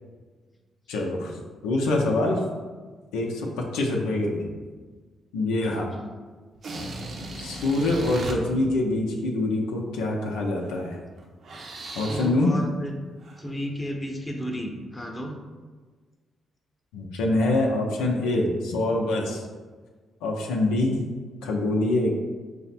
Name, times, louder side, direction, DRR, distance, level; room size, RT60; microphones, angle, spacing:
voice 1, 0.9-2.4 3.1-3.5 3.7-4.5 5.3-5.8 7.4-11.0 11.9-12.5 16.9-19.4 20.2-21.0 21.4-22.1, left 2 dB, 90° left, -1 dB, 0.5 m, -25 dB
voice 2, 5.6-6.1 11.8-12.9 13.4-15.4, equal, 20° left, 2 dB, 0.8 m, -33 dB
sound 1, 6.6-8.4 10.6-10.8 11.2-12.4 13.2-13.4, right 2 dB, 60° right, 0.6 m, -37 dB
4.8 x 2.0 x 4.2 m, 1.4 s
supercardioid pair, 55°, 0 cm